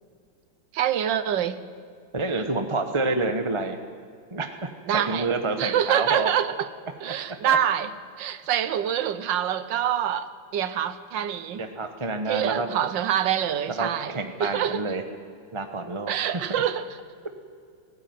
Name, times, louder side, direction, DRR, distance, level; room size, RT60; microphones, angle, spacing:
voice 1, 0.7-1.6 4.9-5.3 5.6-6.7 7.0-7.9 8.2-11.6 12.3-14.1 14.4-14.9 16.1-16.9, right 9 dB, 70° right, 13 dB, 1.6 m, -25 dB
voice 2, 2.1-3.8 4.3-6.3 7.4-7.6 11.6-12.7 13.8-15.0 15.5-16.6, right 3 dB, 20° right, 6 dB, 0.8 m, -28 dB
18.5 x 16.0 x 9.5 m, 2.2 s
omnidirectional pair, 2.2 m